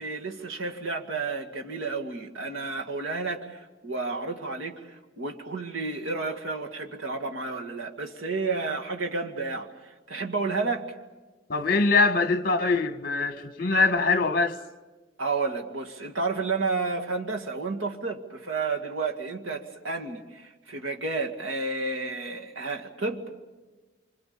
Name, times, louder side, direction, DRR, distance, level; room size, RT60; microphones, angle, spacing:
voice 1, 0.0-10.9 15.2-23.3, right 3 dB, 85° right, 2.2 m, -31 dB
voice 2, 11.5-14.6, left 3 dB, 45° left, 1.3 m, -23 dB
26.5 x 25.5 x 7.0 m
head